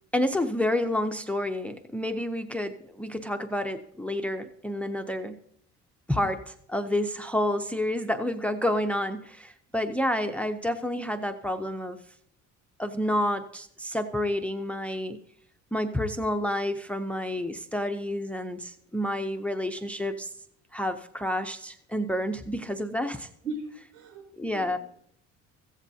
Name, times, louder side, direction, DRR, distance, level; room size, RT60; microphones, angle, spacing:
voice 1, 0.1-5.4 6.1-6.4 6.7-12.0 12.8-15.2 15.7-20.3 20.7-23.3 24.4-24.8, left 1 dB, 5° left, 8 dB, 0.5 m, -29 dB
voice 2, 23.4-24.8, right 2 dB, 75° right, 2 dB, 5.9 m, -39 dB
15.5 x 15.0 x 2.7 m, 0.69 s
cardioid pair, 160°, 30 cm